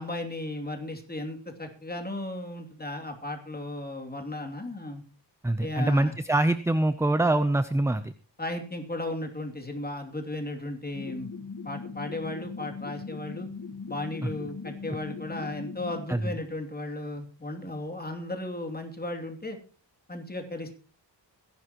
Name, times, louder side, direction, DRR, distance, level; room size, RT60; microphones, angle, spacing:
voice 1, 0.0-5.0 5.6-6.1 8.4-11.3 11.6-13.5 13.9-19.6 20.1-20.8, left 1 dB, 20° left, 3 dB, 2.8 m, -35 dB
voice 2, 5.4-8.1 16.1-16.3, right 2 dB, 5° right, 11 dB, 0.6 m, -24 dB
sound 1, 10.9-16.1, left 4 dB, 50° left, 1.8 m, -40 dB
21.5 x 11.5 x 3.0 m, 0.40 s
wide cardioid pair, 105°, 43 cm